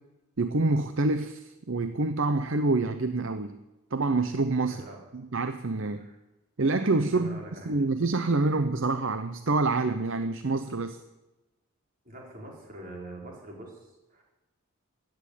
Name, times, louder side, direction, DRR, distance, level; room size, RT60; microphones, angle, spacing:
voice 1, 0.4-3.6 3.9-4.8 5.1-6.1 6.6-7.4 7.6-11.0, right 3 dB, 60° right, 10 dB, 0.7 m, -27 dB
voice 2, 7.1-7.8 12.0-14.2, right 1 dB, 40° right, -1 dB, 4.8 m, -44 dB
15.5 x 10.5 x 8.5 m, 1.0 s
head